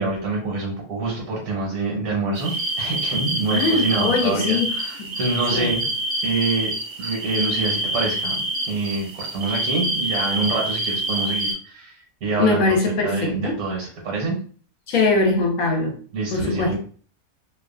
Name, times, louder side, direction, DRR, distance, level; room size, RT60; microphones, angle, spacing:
voice 1, 0.0-5.8 6.2-6.7 7.0-8.4 8.7-11.9 12.2-14.3 16.1-16.8, right 3 dB, 70° right, -2 dB, 1.3 m, -26 dB
sound 1, 2.3-11.5, right 1 dB, 50° right, 0.9 m, -26 dB
voice 2, 3.5-4.7 5.0-5.1 5.5-5.7 12.4-13.6 14.9-16.0 16.3-16.8, left 3 dB, 70° left, 1 dB, 1.0 m, -21 dB
2.8 x 2.2 x 2.3 m, 0.43 s
omnidirectional pair, 1.6 m